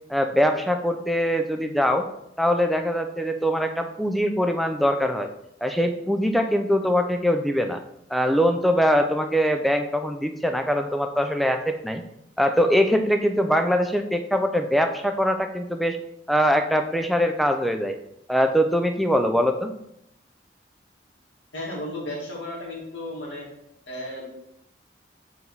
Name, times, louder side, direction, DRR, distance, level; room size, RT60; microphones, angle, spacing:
voice 1, 0.1-2.0 2.4-5.3 5.6-7.8 8.1-12.0 12.4-16.0 16.3-18.0 18.3-19.7, equal, ahead, 5 dB, 0.4 m, -22 dB
voice 2, 21.5-23.5 23.9-24.3, left 1 dB, 80° left, -3 dB, 2.1 m, -34 dB
4.8 x 4.0 x 5.5 m, 0.79 s
head